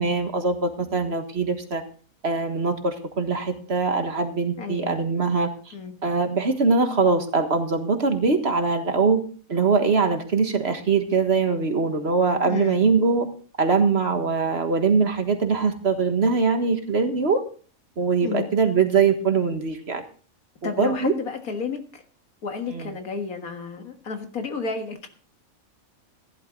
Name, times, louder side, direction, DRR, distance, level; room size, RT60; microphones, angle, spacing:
voice 1, 0.0-1.8 2.2-5.5 6.0-9.2 9.5-13.3 13.6-17.4 18.0-20.0 20.6-21.1 22.7-22.8, right 4 dB, 50° right, 7 dB, 1.7 m, -22 dB
voice 2, 4.6-5.0 5.7-6.0 12.4-12.9 18.2-18.5 20.6-22.0 22.4-25.1, left 5 dB, 85° left, 6 dB, 2.2 m, -32 dB
15.0 x 11.5 x 3.9 m, 0.41 s
omnidirectional pair, 1.5 m